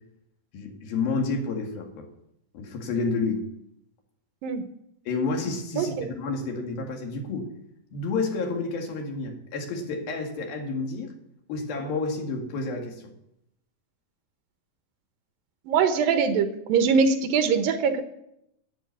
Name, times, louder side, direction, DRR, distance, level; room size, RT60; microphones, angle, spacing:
voice 1, 0.5-2.1 2.5-3.5 5.1-7.5 7.9-11.1 11.5-13.0, left 3 dB, 75° left, 2 dB, 3.9 m, -30 dB
voice 2, 5.8-6.1 15.7-18.0, right 5 dB, 75° right, 7 dB, 2.7 m, -22 dB
11.5 x 8.0 x 9.4 m, 0.80 s
omnidirectional pair, 4.2 m